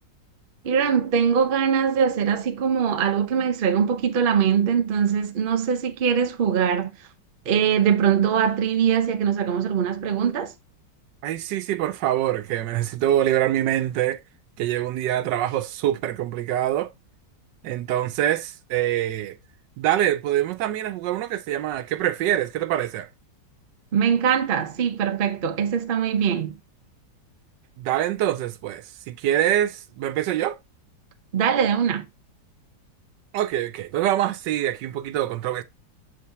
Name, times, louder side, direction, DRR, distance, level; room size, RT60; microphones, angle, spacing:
voice 1, 0.6-7.0 7.5-10.5 23.9-26.6 31.3-32.1, right 7 dB, 55° right, 0.6 m, -22 dB
voice 2, 11.2-14.2 14.6-16.9 17.6-19.4 19.8-23.1 27.8-30.6 33.3-35.6, right 12 dB, 80° right, 1.3 m, -25 dB
7.1 x 3.4 x 4.1 m
omnidirectional pair, 1.9 m